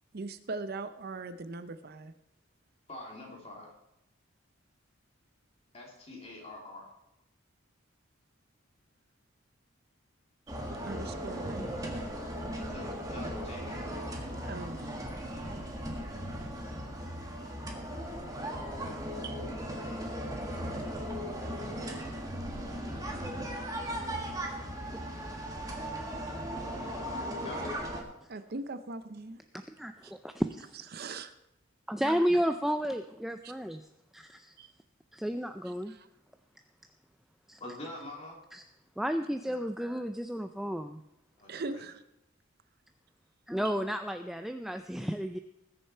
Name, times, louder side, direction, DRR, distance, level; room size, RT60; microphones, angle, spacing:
voice 1, 0.1-2.1 10.5-10.6 10.8-11.6 13.8-14.0 14.4-14.8 19.2-19.4 28.3-29.4 30.0-30.1 30.9-31.3 33.4-33.5 34.6-34.7 35.9-36.1 41.5-42.0 43.6-43.7, right 3 dB, 50° right, 11 dB, 0.6 m, -40 dB
voice 2, 2.9-3.7 5.7-6.9 12.7-13.9 27.3-27.8 37.6-38.4 41.4-41.8, left 2 dB, 30° left, -2 dB, 3.2 m, -45 dB
sound 1, 10.5-28.0, equal, 20° right, 1.7 m, -37 dB
voice 3, 29.8-30.7 31.9-33.8 34.1-34.5 35.1-35.9 37.5-37.6 38.5-38.6 39.0-41.0 43.5-45.4, equal, ahead, 7 dB, 0.4 m, -32 dB
20.0 x 6.7 x 4.4 m, 0.86 s
head